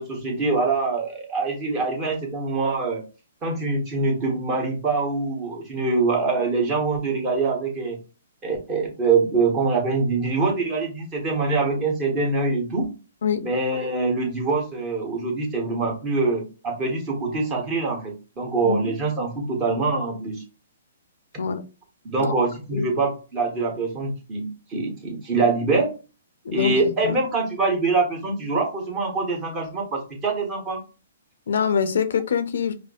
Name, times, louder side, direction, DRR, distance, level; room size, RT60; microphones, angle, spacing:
voice 1, 0.0-3.0 3.4-8.0 8.4-12.9 13.4-20.4 22.0-25.9 26.5-30.8, right 3 dB, 25° right, 0 dB, 1.4 m, -24 dB
voice 2, 18.6-19.0 21.4-21.6 22.2-22.3 22.7-22.9 26.4-26.8 27.0-27.1 31.5-32.7, left 6 dB, 70° left, 10 dB, 0.5 m, -24 dB
4.9 x 2.0 x 2.5 m, 0.33 s
hypercardioid pair, 125°, 0 cm